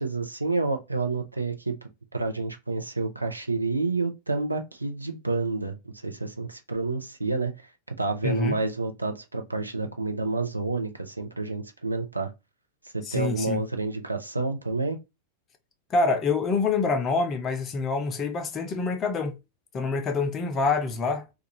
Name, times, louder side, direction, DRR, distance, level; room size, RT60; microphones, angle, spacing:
voice 1, 0.0-7.5 8.0-12.3 12.9-15.0, right 3 dB, 85° right, 0.5 m, -29 dB
voice 2, 8.2-8.6 13.1-13.6 15.9-19.4 19.7-21.2, left 4 dB, 25° left, 0.5 m, -26 dB
2.4 x 2.3 x 2.8 m
figure-of-eight pair, 90°, 0 cm